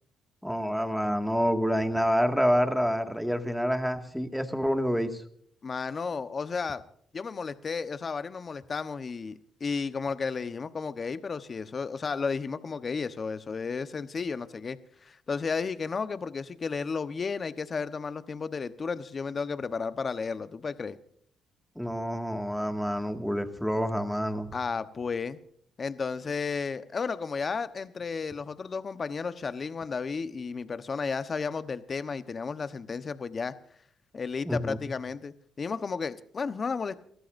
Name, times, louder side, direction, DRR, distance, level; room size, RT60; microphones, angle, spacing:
voice 1, 0.4-5.2 21.8-24.5 34.5-34.8, equal, ahead, 6 dB, 2.0 m, -27 dB
voice 2, 5.6-6.8 7.1-21.0 24.5-25.4 25.8-33.5 34.1-37.0, left 5 dB, 40° left, 12 dB, 1.0 m, -33 dB
29.0 x 14.0 x 2.6 m, 0.63 s
cardioid pair, 90°, 0 cm